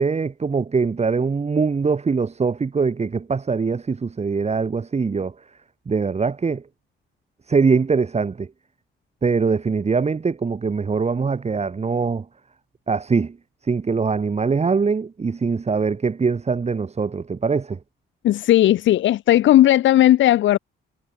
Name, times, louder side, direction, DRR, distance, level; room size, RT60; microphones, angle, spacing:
voice 1, 0.0-5.5 5.9-6.7 7.5-8.5 9.2-12.3 12.9-13.4 13.6-17.8, right 5 dB, 35° right, 3.2 m, -22 dB
voice 2, 18.2-20.6, left 13 dB, 75° left, 1.0 m, -15 dB
cardioid pair, 90°, 20 cm